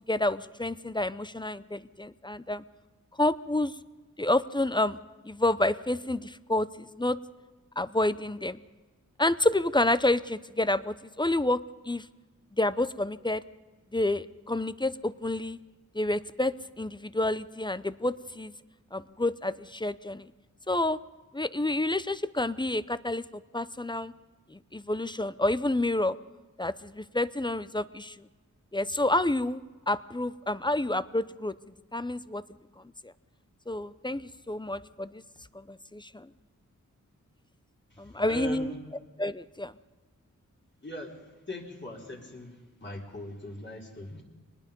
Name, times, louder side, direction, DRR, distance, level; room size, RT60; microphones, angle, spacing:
voice 1, 0.1-2.6 3.2-3.7 4.2-5.0 5.2-7.2 7.8-8.6 9.2-11.6 11.9-12.0 12.6-13.4 13.9-15.6 15.9-18.5 18.9-20.2 20.7-21.0 21.3-24.1 24.5-26.2 26.6-28.1 28.7-29.6 29.9-31.5 31.9-32.4 33.7-35.2 35.5-36.3 38.0-38.7 39.2-39.7, left 1 dB, 15° left, 15 dB, 0.7 m, -29 dB
voice 2, 37.9-38.8 40.8-41.2 41.5-44.2, equal, 35° left, -2 dB, 4.4 m, -40 dB
25.0 x 20.0 x 5.3 m, 1.3 s
wide cardioid pair, 85°, 32 cm